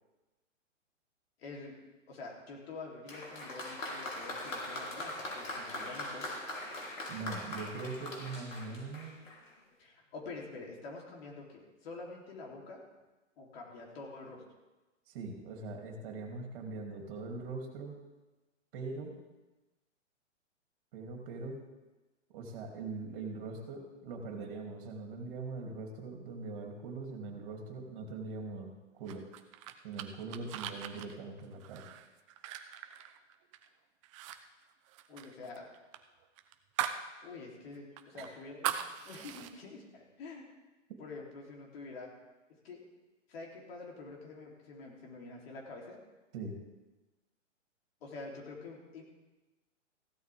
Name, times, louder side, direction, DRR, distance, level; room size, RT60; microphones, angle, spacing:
voice 1, 1.4-1.7 2.1-6.3 9.8-12.8 13.4-14.4 35.1-35.7 37.2-38.7 39.0-40.5 41.0-42.1 42.6-42.8 43.3-46.0 48.0-49.0, left 3 dB, 50° left, -1 dB, 3.4 m, -47 dB
Applause, 3.1-9.5, left 1 dB, 90° left, 3.4 m, -41 dB
voice 2, 7.1-9.1 15.1-18.0 18.7-19.1 20.9-21.6 22.3-29.2 29.8-31.8 38.1-38.3 40.9-41.0 46.3-46.6, right 3 dB, 45° right, 2 dB, 3.0 m, -42 dB
sound 1, 29.1-33.7 34.0-34.4 34.6-37.1 37.4-37.5 38.0-39.5, right 11 dB, 25° right, 0.6 m, -40 dB
15.5 x 12.0 x 3.6 m, 1.1 s
hypercardioid pair, 130°, 38 cm